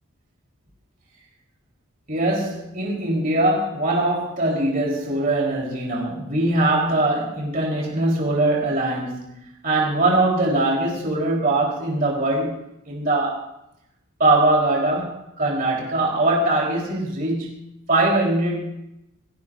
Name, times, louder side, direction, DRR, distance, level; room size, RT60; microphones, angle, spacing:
voice 1, 2.1-12.6 12.9-13.5 14.2-17.6 17.9-18.6, right 2 dB, 40° right, -3 dB, 3.4 m, -22 dB
17.5 x 16.5 x 2.5 m, 0.83 s
head